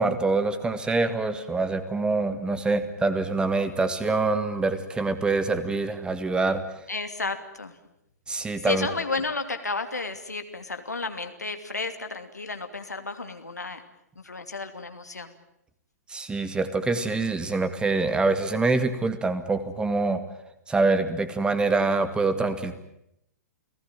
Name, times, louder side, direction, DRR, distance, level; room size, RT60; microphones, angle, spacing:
voice 1, 0.0-6.6 8.3-8.9 16.1-20.2 20.7-22.7, right 3 dB, 10° right, 10 dB, 2.2 m, -25 dB
voice 2, 6.9-7.8 8.6-13.8 14.1-15.3, left 3 dB, 80° left, 7 dB, 2.8 m, -32 dB
29.5 x 18.5 x 9.1 m, 0.79 s
figure-of-eight pair, 110°, 9 cm